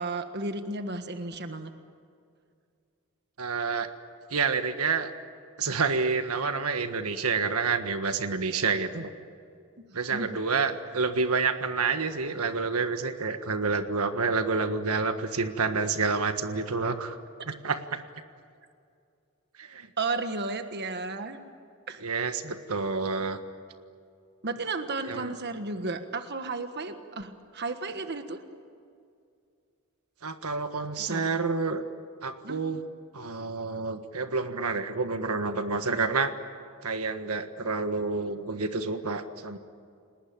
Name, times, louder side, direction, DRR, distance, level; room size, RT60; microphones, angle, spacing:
voice 1, 0.0-1.7 9.8-9.9 10.1-10.3 20.0-21.4 21.9-22.0 24.4-28.4 31.1-31.3 32.4-32.6, right 3 dB, 50° right, 8 dB, 1.5 m, -33 dB
voice 2, 3.4-3.9 4.3-5.1 5.6-9.1 9.9-17.2 17.5-18.0 19.6-19.9 22.0-23.4 25.0-25.3 30.2-31.8 32.2-32.8 33.1-36.3 36.8-39.6, right 4 dB, 85° right, 8 dB, 1.6 m, -28 dB
30.0 x 19.5 x 8.9 m, 2.4 s
head